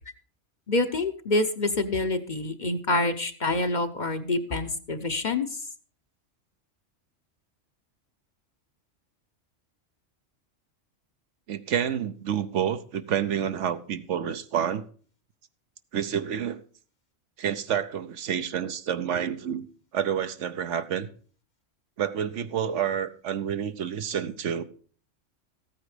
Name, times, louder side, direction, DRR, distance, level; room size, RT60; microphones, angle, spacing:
voice 1, 0.7-5.5, left 2 dB, 40° left, 0.8 m, -26 dB
voice 2, 11.5-14.8 15.9-16.6 17.4-19.7 19.9-21.1 22.0-24.6, right 9 dB, 75° right, 1.1 m, -29 dB
14.5 x 8.9 x 4.9 m
omnidirectional pair, 1.3 m